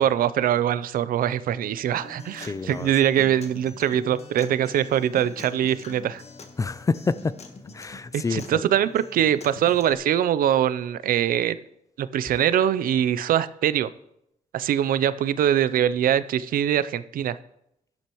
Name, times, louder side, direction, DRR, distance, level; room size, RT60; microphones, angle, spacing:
voice 1, 0.0-6.2 8.1-11.6 12.0-13.9 14.5-17.4, right 10 dB, 85° right, 0.5 m, -23 dB
Acoustic guitar, 1.9-9.9, left 4 dB, 50° left, 1.3 m, -45 dB
voice 2, 2.4-2.9 6.6-7.3 7.7-8.6, left 4 dB, 25° left, 0.4 m, -27 dB
12.5 x 11.5 x 3.0 m
cardioid pair, 105°, 14 cm